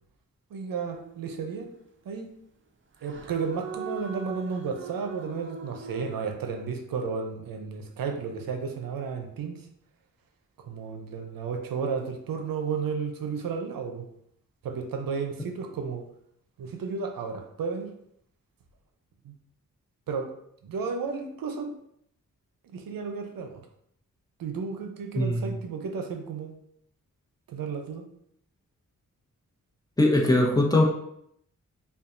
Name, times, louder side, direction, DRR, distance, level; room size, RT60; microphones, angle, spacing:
voice 1, 0.5-1.7 2.1-2.3 3.0-9.7 10.7-14.1 14.6-16.0 16.6-17.9 19.2-19.3 20.1-20.3 20.6-21.7 22.7-23.5 24.4-26.5 27.5-28.1, right 5 dB, 85° right, 4 dB, 0.6 m, -33 dB
sound 1, 0.9-1.5 3.0-6.2, right 5 dB, 35° right, 0.5 m, -40 dB
voice 2, 25.1-25.5 30.0-30.8, left 1 dB, 10° left, 0 dB, 0.9 m, -21 dB
5.2 x 2.3 x 2.5 m, 0.72 s
cardioid pair, 55°, 33 cm